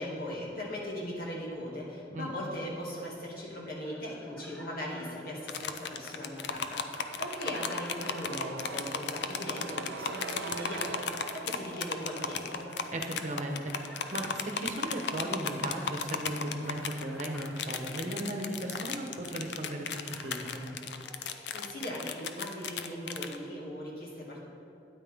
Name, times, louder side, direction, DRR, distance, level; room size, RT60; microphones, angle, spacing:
voice 1, 0.0-12.7 21.5-24.4, left 1 dB, 60° left, -3 dB, 2.3 m, -39 dB
sound 1, 3.8-21.9, equal, 5° left, 0.9 m, -53 dB
sound 2, 5.5-23.4, left 6 dB, 75° left, 0.6 m, -36 dB
sound 3, 6.7-18.5 18.8-18.9, right 4 dB, 85° right, 0.5 m, -45 dB
voice 2, 12.9-20.8, right 1 dB, 45° right, 2 dB, 1.1 m, -36 dB
12.5 x 9.6 x 3.6 m, 2.6 s
head